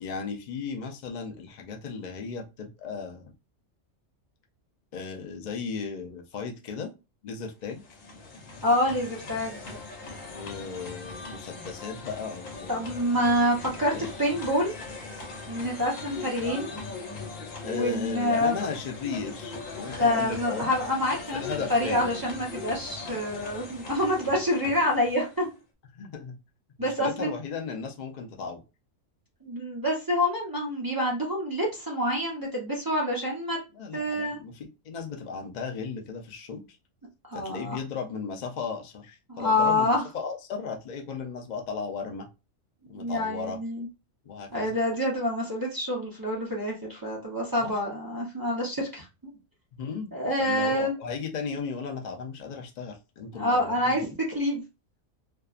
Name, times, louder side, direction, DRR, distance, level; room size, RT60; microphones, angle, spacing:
voice 1, 0.0-3.3 4.9-6.9 7.2-7.8 10.2-13.0 13.9-14.1 17.6-20.7 21.3-22.1 25.9-26.4 26.8-28.6 33.7-36.6 37.3-42.3 42.9-43.6 44.2-44.7 47.6-47.7 49.7-50.1 50.4-54.0, left 5 dB, 60° left, 3 dB, 0.4 m, -36 dB
sound 1, 7.5-25.6, left 4 dB, 80° left, 1.2 m, -40 dB
voice 2, 8.6-9.8 12.7-14.7 15.5-16.7 17.6-18.7 20.0-21.4 21.7-25.5 26.8-27.3 29.4-33.6 33.9-34.4 37.3-37.8 39.3-40.0 42.9-43.9 44.5-49.1 50.1-50.9 53.3-54.1 54.3-54.6, left 1 dB, 35° right, -4 dB, 0.3 m, -27 dB
2.6 x 2.3 x 2.3 m, 0.28 s
omnidirectional pair, 1.3 m